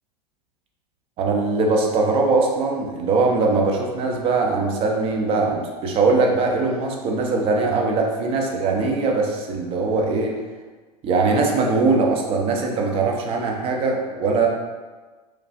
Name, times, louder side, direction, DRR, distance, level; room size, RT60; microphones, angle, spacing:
voice 1, 1.2-10.4 11.0-14.5, right 3 dB, 25° right, 1 dB, 0.4 m, -21 dB
3.2 x 2.4 x 2.4 m, 1.3 s
figure-of-eight pair, 85°, 21 cm